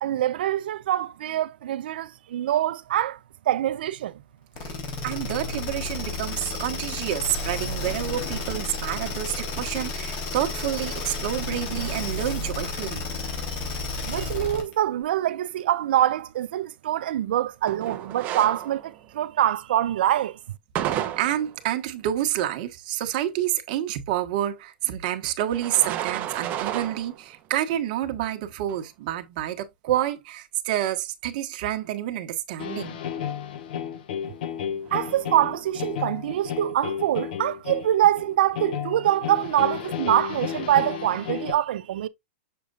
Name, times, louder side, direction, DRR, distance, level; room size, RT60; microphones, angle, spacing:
voice 1, 0.0-3.2 3.5-4.1 14.0-20.4 34.9-42.1, right 12 dB, 70° right, 0.6 m, -24 dB
sound 1, 4.6-14.7, left 3 dB, 45° left, 3.4 m, -32 dB
voice 2, 5.0-13.0 21.2-33.0, right 12 dB, 55° right, 1.3 m, -28 dB
sound 2, 17.7-19.1 20.7-21.7 25.5-27.3 27.7-27.8 28.7-28.8 34.6-35.7, right 11 dB, 30° right, 0.9 m, -32 dB
sound 3, 32.6-41.5, left 8 dB, 65° left, 1.1 m, -33 dB
6.7 x 6.6 x 2.4 m
hypercardioid pair, 140°, 5 cm